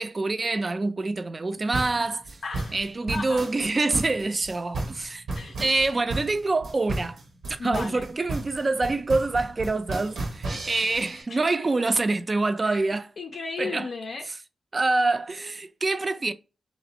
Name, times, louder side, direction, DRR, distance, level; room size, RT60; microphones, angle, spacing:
voice 1, 0.0-2.2 2.7-5.2 5.6-7.2 7.6-13.1 13.6-13.9 14.7-16.3, right 3 dB, 40° right, 0.3 m, -26 dB
sound 1, 1.7-11.2, right 2 dB, 85° right, 0.7 m, -33 dB
voice 2, 2.4-2.8 3.1-3.4 5.4-5.7 7.6-8.1 10.7-10.9 11.3-11.4 12.6-12.8 13.2-14.3, left 4 dB, 75° left, 0.4 m, -35 dB
2.4 x 2.0 x 2.8 m
cardioid pair, 65°, 0 cm